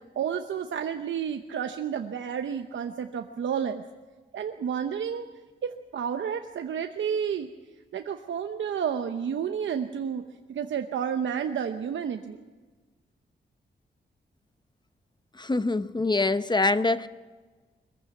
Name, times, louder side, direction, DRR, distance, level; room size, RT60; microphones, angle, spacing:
voice 1, 0.2-3.8 4.3-5.2 5.6-7.5 7.9-10.2 10.5-12.4, right 8 dB, 90° right, 6 dB, 0.9 m, -31 dB
voice 2, 15.4-17.1, left 3 dB, 25° left, 13 dB, 0.8 m, -24 dB
22.5 x 14.5 x 8.2 m, 1.4 s
wide cardioid pair, 90°, 19 cm